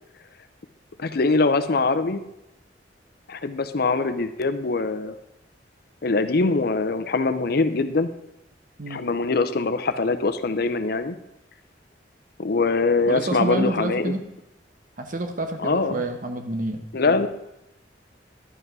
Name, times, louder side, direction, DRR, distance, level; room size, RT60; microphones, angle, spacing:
voice 1, 1.0-2.2 3.3-5.1 6.0-8.1 8.9-11.2 12.4-14.1 15.6-16.0 16.9-17.3, left 3 dB, 60° left, 11 dB, 0.7 m, -23 dB
voice 2, 13.1-14.2 15.0-16.8, right 2 dB, 50° right, 6 dB, 1.1 m, -28 dB
11.0 x 5.7 x 6.1 m, 0.87 s
head